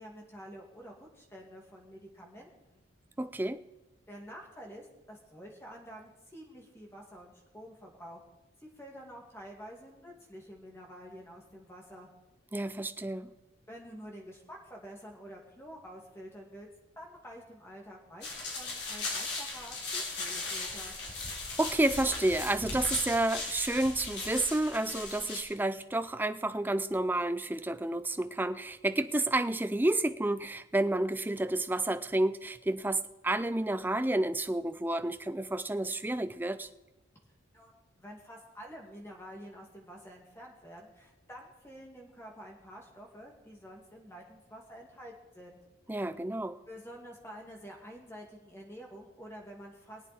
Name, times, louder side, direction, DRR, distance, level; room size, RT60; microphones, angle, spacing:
voice 1, 0.0-2.8 4.1-8.3 8.6-12.1 13.7-16.7 17.0-21.0 37.5-37.7 38.0-45.6 46.7-50.0, equal, 10° left, 0 dB, 2.3 m, -49 dB
voice 2, 3.2-3.6 12.5-13.3 21.6-36.7 45.9-46.6, right 1 dB, 10° right, 11 dB, 0.4 m, -30 dB
sound 1, 18.2-25.4, left 3 dB, 55° left, 3.4 m, -38 dB
22.5 x 8.4 x 4.3 m, 1.0 s
head